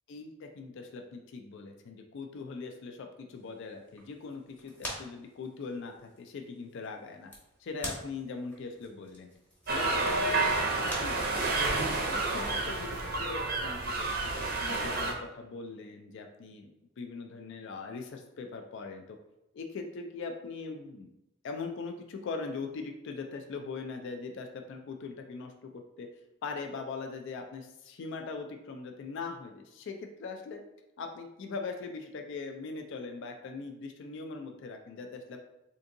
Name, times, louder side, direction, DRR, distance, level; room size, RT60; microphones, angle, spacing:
voice 1, 0.1-7.3 7.6-9.3 9.7-11.7 12.0-19.2 19.5-21.1 21.4-26.1 26.4-30.6 31.0-35.4, left 4 dB, 60° left, 4 dB, 0.3 m, -41 dB
sound 1, 3.3-12.9, equal, 10° left, 0.8 m, -47 dB
sound 2, 9.7-15.1, right 3 dB, 45° right, 0.5 m, -30 dB
3.6 x 2.6 x 2.6 m, 0.90 s
head